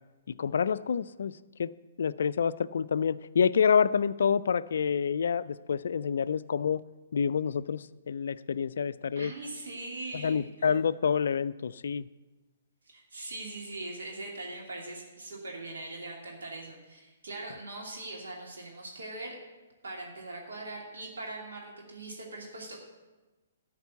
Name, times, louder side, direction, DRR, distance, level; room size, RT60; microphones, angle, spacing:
voice 1, 0.4-1.3 1.6-1.7 2.0-6.8 7.1-9.3 10.1-12.1, left 6 dB, 65° left, 14 dB, 0.3 m, -27 dB
voice 2, 9.1-10.7 12.9-19.4 19.8-22.8, right 2 dB, 70° right, -1 dB, 2.6 m, -41 dB
12.5 x 5.3 x 8.2 m, 1.2 s
figure-of-eight pair, 125°, 0 cm